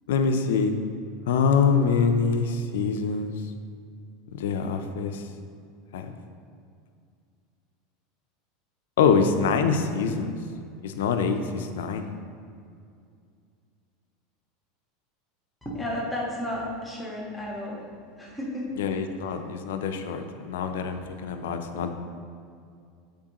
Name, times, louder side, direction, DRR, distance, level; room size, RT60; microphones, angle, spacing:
voice 1, 0.1-0.8 1.3-3.4 4.3-5.2 5.9-6.1 9.0-10.4 10.8-12.0 18.8-21.9, left 5 dB, 80° left, 7 dB, 0.4 m, -25 dB
voice 2, 15.6-17.9 18.2-18.8 19.3-19.4, left 1 dB, 10° left, -5 dB, 1.4 m, -33 dB
7.3 x 4.6 x 2.9 m, 2.3 s
supercardioid pair, 110°, 0 cm